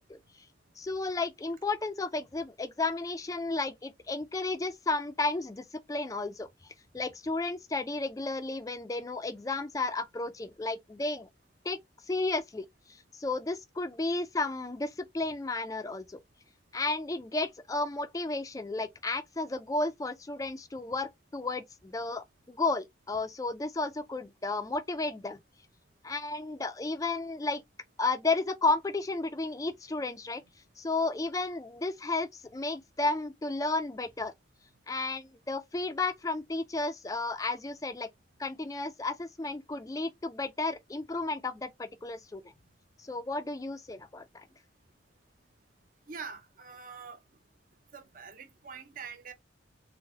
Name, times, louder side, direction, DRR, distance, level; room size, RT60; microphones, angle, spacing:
voice 1, 0.8-11.3 11.6-11.8 12.1-16.2 16.7-25.4 26.0-27.6 28.0-30.4 30.8-34.3 34.9-38.1 38.4-42.4 43.0-44.5, left 3 dB, 15° left, 0.3 m, -33 dB
voice 2, 46.1-47.2 47.9-49.3, right 5 dB, 45° right, 0.6 m, -44 dB
3.8 x 2.1 x 2.7 m
head